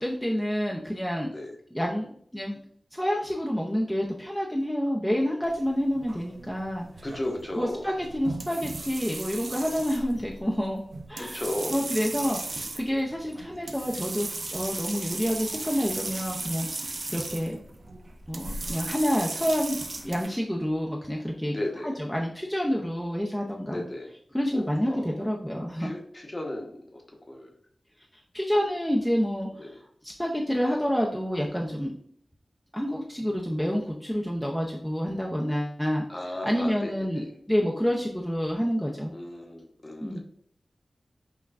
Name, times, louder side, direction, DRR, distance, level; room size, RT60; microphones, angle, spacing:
voice 1, 0.0-1.3 1.7-2.6 2.9-6.9 7.6-10.8 11.1-11.4 11.7-17.6 18.3-21.6 21.8-23.9 24.3-25.9 28.3-29.7 30.0-31.9 32.7-36.0 36.4-39.1 40.0-40.2, equal, 5° left, -1 dB, 0.5 m, -28 dB
sound 1, 5.4-20.3, right 2 dB, 70° right, 0.5 m, -37 dB
voice 2, 7.0-7.9 11.2-11.8 21.4-22.0 23.7-24.1 24.5-25.3 25.8-27.0 27.3-27.5 29.6-29.7 36.1-37.2 39.1-40.2, left 1 dB, 30° left, 1 dB, 0.8 m, -35 dB
5.5 x 2.2 x 2.4 m, 0.62 s
wide cardioid pair, 60°, 0 cm